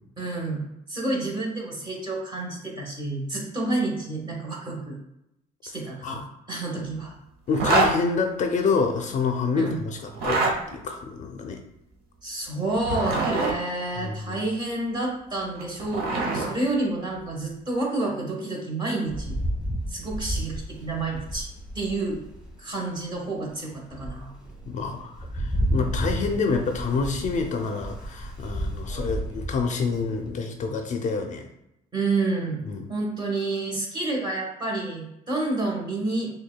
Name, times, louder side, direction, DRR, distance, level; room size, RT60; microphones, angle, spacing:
voice 1, 0.2-5.0 5.6-7.1 9.5-9.8 12.2-19.4 19.9-21.5 21.7-22.2 22.6-24.3 31.9-32.6 32.9-36.3, right 2 dB, 25° right, -1 dB, 1.2 m, -29 dB
voice 2, 7.5-11.6 14.0-14.4 24.7-31.4 32.6-32.9, left 4 dB, 45° left, 5 dB, 0.4 m, -27 dB
Zipper (clothing), 7.5-7.9 10.1-10.5 12.7-13.5 15.4-16.5, right 3 dB, 70° right, 0.8 m, -24 dB
Rain, 19.1-22.6 23.1-23.2 23.7-30.3, equal, 5° right, 1.2 m, -32 dB
6.0 x 2.2 x 2.2 m, 0.84 s
cardioid pair, 110°, 17 cm